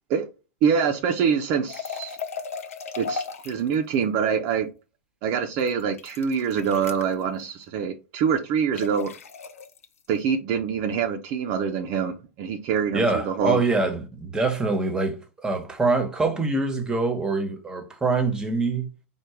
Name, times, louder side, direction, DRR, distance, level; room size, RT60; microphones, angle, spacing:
voice 1, 0.6-2.2 3.0-4.7 5.2-9.1 10.1-13.6, right 7 dB, 45° right, 0.7 m, -25 dB
sound 1, 1.7-3.7 5.6-7.1 8.8-9.9, left 5 dB, 85° left, 0.7 m, -35 dB
voice 2, 12.9-18.9, right 3 dB, 10° right, 1.1 m, -24 dB
4.4 x 2.4 x 4.8 m
hypercardioid pair, 115°, 7 cm